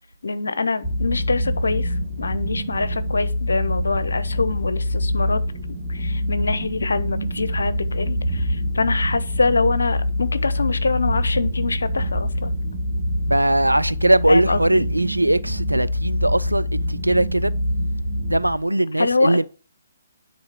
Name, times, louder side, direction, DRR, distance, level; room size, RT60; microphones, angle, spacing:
voice 1, 0.2-5.4 5.9-12.5 14.3-14.6 19.0-19.4, left 3 dB, 65° left, 0.8 m, -24 dB
sound 1, 0.8-18.6, left 1 dB, 5° right, 1.9 m, -25 dB
voice 2, 13.3-17.5 18.3-19.4, right 1 dB, 85° right, 0.4 m, -20 dB
9.3 x 4.1 x 5.0 m
figure-of-eight pair, 135°, 0 cm